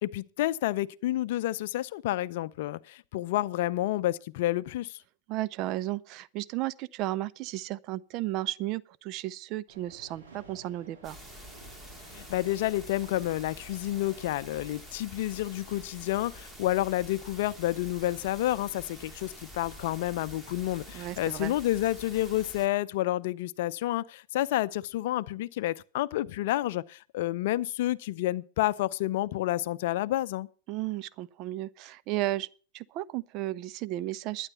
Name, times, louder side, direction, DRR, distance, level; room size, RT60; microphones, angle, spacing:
voice 1, 0.0-5.0 12.1-30.5, left 15 dB, 60° left, 0.5 m, -30 dB
voice 2, 5.3-11.2 20.9-21.5 30.7-32.5 32.7-34.5, right 16 dB, 45° right, 0.5 m, -34 dB
sound 1, 9.7-14.8, right 2 dB, 70° right, 7.6 m, -53 dB
sound 2, 11.0-22.7, equal, 10° right, 2.3 m, -47 dB
12.0 x 9.9 x 5.6 m
hypercardioid pair, 105°, 0 cm